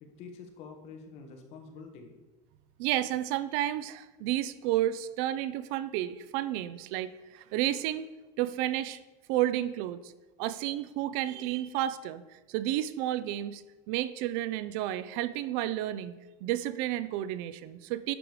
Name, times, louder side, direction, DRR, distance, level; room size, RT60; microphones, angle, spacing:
voice 1, 0.0-2.1, left 5 dB, 40° left, 4 dB, 1.3 m, -47 dB
voice 2, 2.8-8.1 8.4-9.0 9.3-10.1 10.4-13.6 13.9-16.1 16.4-18.1, right 13 dB, 55° right, 14 dB, 0.4 m, -31 dB
11.0 x 5.0 x 4.8 m, 1.1 s
cardioid pair, 180°, 16 cm